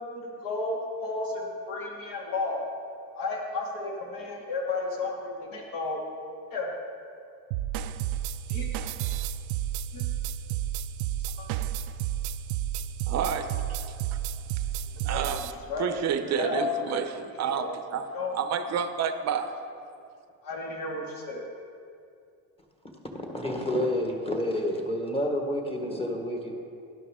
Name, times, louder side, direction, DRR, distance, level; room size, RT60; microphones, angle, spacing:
voice 1, 0.0-2.6 3.1-6.0 6.5-6.7 8.5-8.7 9.9-10.0 11.4-11.5 15.0-15.3 15.7-15.9 16.2-17.0 17.5-17.7 18.1-18.4 20.4-21.5, left 3 dB, 65° left, -1 dB, 2.4 m, -33 dB
sound 1, 7.5-15.5, right 11 dB, 75° right, 0.5 m, -31 dB
voice 2, 13.1-13.8 15.0-15.4 15.8-17.1 17.4-18.1 18.3-19.5, right 7 dB, 45° right, 9 dB, 0.8 m, -29 dB
voice 3, 23.1-26.5, left 1 dB, 15° left, 1 dB, 1.4 m, -29 dB
12.0 x 10.5 x 3.7 m, 2.5 s
cardioid pair, 130°, 38 cm